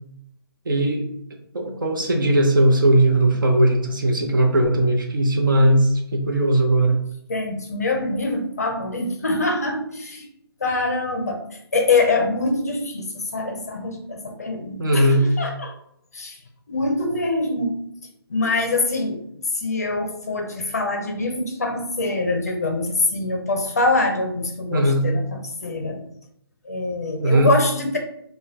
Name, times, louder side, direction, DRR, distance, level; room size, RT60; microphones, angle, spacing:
voice 1, 0.7-1.1 1.5-7.0 14.8-15.2 24.7-25.1 27.2-27.5, right 1 dB, 50° right, 2 dB, 0.8 m, -18 dB
voice 2, 7.3-10.3 10.6-15.7 16.1-16.4 16.7-17.8 18.3-26.0 26.6-28.0, left 2 dB, 40° left, 3 dB, 0.5 m, -24 dB
5.1 x 2.2 x 2.8 m, 0.72 s
hypercardioid pair, 175°, 14 cm